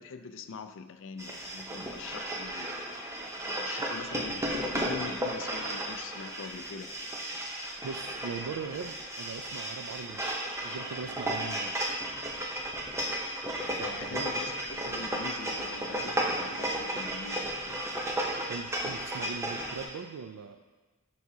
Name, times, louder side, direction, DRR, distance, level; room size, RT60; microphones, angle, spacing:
voice 1, 0.0-2.7 3.4-4.5 4.7-6.9 13.9-17.8, left 5 dB, 60° left, 10 dB, 0.4 m, -43 dB
sound 1, 1.2-19.9, right 1 dB, 10° right, 0.7 m, -34 dB
voice 2, 7.8-11.8 13.8-14.3 18.3-20.6, right 5 dB, 85° right, 7 dB, 0.4 m, -40 dB
10.5 x 4.8 x 2.7 m, 1.2 s
head